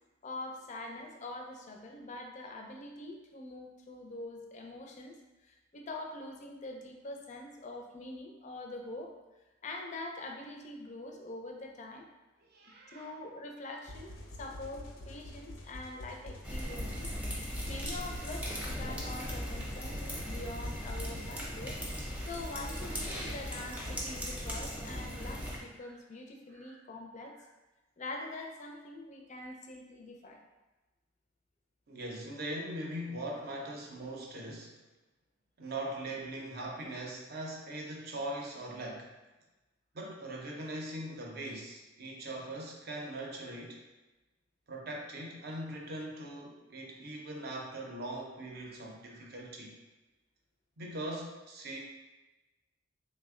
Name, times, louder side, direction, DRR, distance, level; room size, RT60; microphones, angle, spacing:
voice 1, 0.2-5.2 5.4-9.1 9.6-12.0 12.9-17.1 17.7-21.8 22.3-27.3 28.0-30.4, left 2 dB, 40° left, 2 dB, 0.4 m, -44 dB
voice 2, 12.5-13.1 25.1-25.2 26.5-26.8 31.9-34.7 35.6-39.1 39.9-43.8 44.7-49.7 50.8-51.8, right 1 dB, 55° right, -1 dB, 0.6 m, -41 dB
sound 1, 13.9-21.3, left 1 dB, 85° left, 0.5 m, -47 dB
sound 2, 16.4-25.6, equal, 5° right, 0.6 m, -38 dB
3.3 x 2.1 x 3.6 m, 1.1 s
head